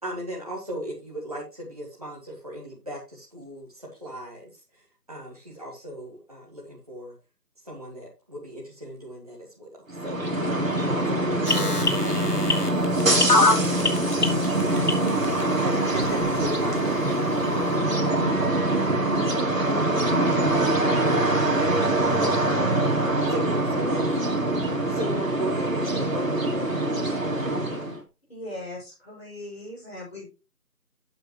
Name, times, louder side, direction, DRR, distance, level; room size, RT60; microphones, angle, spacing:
voice 1, 0.0-4.5 5.1-7.1 7.6-10.2 10.8-12.1 15.6-18.0 22.2-22.9 23.3-24.4 24.9-27.5 27.8-27.9, right 1 dB, 25° right, -4 dB, 1.6 m, -37 dB
sound 1, 9.9-28.0, right 1 dB, 55° right, 2.0 m, -24 dB
sound 2, 11.5-15.4 16.0-16.1, left 2 dB, 65° left, 2.0 m, -22 dB
voice 2, 20.2-21.5, equal, 85° left, -5 dB, 4.2 m, -37 dB
voice 3, 28.3-30.3, left 1 dB, 40° left, -4 dB, 5.7 m, -39 dB
9.9 x 7.8 x 3.0 m, 0.28 s
figure-of-eight pair, 170°, 48 cm